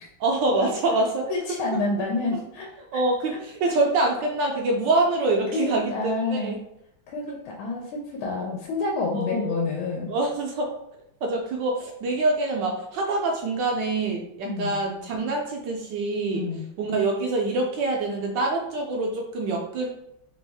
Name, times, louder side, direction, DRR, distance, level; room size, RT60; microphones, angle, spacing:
voice 1, 0.2-1.3 2.9-6.5 9.1-9.6 10.1-10.7 11.2-16.4 16.8-19.9, right 2 dB, 75° right, 1 dB, 1.1 m, -25 dB
voice 2, 1.3-2.7 3.3-3.4 3.7-3.8 5.5-6.6 7.1-10.1 14.4-14.8 16.3-16.6, left 3 dB, 85° left, 0 dB, 1.4 m, -28 dB
3.4 x 3.0 x 3.4 m, 0.79 s
omnidirectional pair, 2.2 m